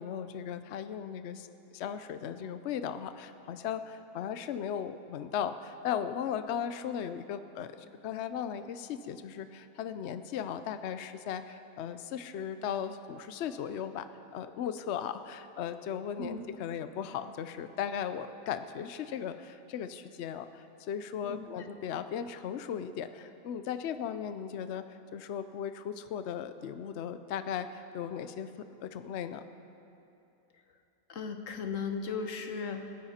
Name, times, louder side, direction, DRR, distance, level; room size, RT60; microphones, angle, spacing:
voice 1, 0.0-1.5 1.7-7.8 8.0-28.5 28.8-29.4, left 8 dB, 75° left, 10 dB, 0.6 m, -37 dB
voice 2, 21.2-21.6 31.1-32.9, left 5 dB, 50° left, 6 dB, 1.3 m, -36 dB
27.0 x 11.0 x 4.3 m, 2.8 s
omnidirectional pair, 1.8 m